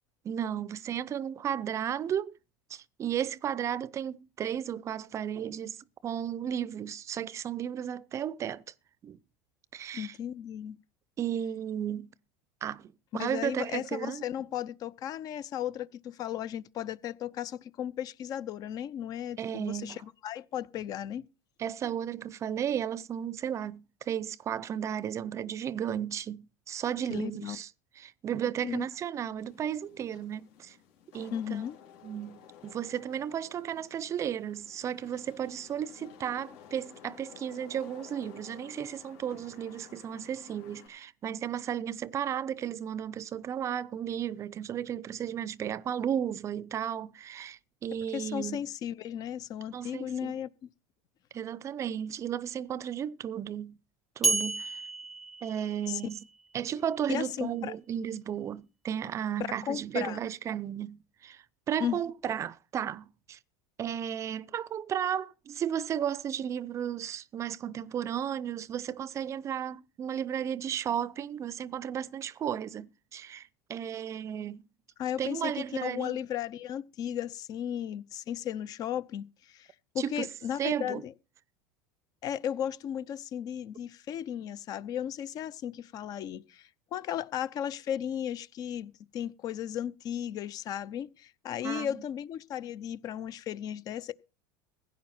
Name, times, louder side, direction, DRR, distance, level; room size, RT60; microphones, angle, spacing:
voice 1, 0.2-2.4 2.7-8.6 9.0-9.2 9.7-10.2 11.2-12.1 12.6-14.2 19.4-20.0 21.6-27.7 28.0-30.8 31.1-31.6 32.0-48.7 49.7-50.4 51.3-53.8 54.2-54.8 55.4-56.2 56.5-63.4 63.8-74.6 75.2-76.2 80.0-80.3 80.6-81.0 91.6-92.0, right 9 dB, 35° right, 0.6 m, -34 dB
voice 2, 9.9-10.8 13.1-21.3 27.1-27.6 28.6-28.8 31.3-31.8 48.1-50.7 55.9-56.0 57.1-57.7 59.4-60.2 61.8-62.0 75.0-79.7 79.9-81.1 82.2-94.1, left 10 dB, 45° left, 0.7 m, -35 dB
Wind / Rain, 29.4-40.9, left 9 dB, 70° left, 3.8 m, -53 dB
sound 1, 54.2-56.3, right 3 dB, ahead, 0.8 m, -31 dB
16.0 x 9.4 x 4.3 m
supercardioid pair, 115°, 9 cm